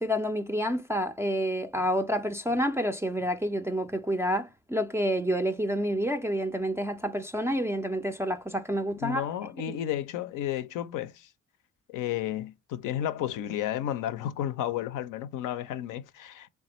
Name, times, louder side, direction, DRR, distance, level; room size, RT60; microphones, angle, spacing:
voice 1, 0.0-9.3 9.7-9.8, equal, 10° right, 0.4 m, -29 dB
voice 2, 9.0-11.3 11.9-16.5, left 11 dB, 60° left, 0.5 m, -32 dB
3.5 x 3.2 x 2.9 m
hypercardioid pair, 50°, 36 cm